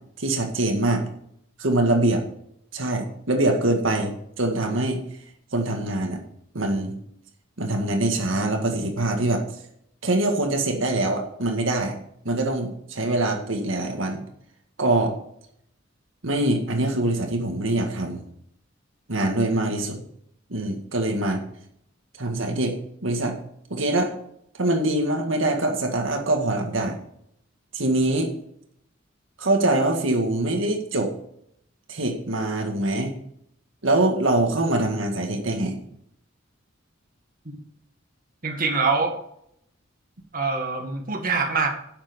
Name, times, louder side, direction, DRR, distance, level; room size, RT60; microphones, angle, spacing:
voice 1, 0.2-1.0 1.6-2.2 2.7-5.0 5.5-6.2 6.5-6.9 7.6-9.4 10.0-12.0 12.2-14.2 14.8-15.2 16.2-18.2 19.1-20.0 20.5-21.4 22.2-22.7 23.0-23.4 23.7-24.1 24.6-27.0 27.7-28.3 29.4-31.1 31.9-33.1 33.8-35.8, right 2 dB, 90° right, 3 dB, 1.9 m, -24 dB
voice 2, 38.4-39.1 40.3-41.7, right 4 dB, 45° right, 3 dB, 1.9 m, -24 dB
11.0 x 7.3 x 5.2 m, 0.72 s
head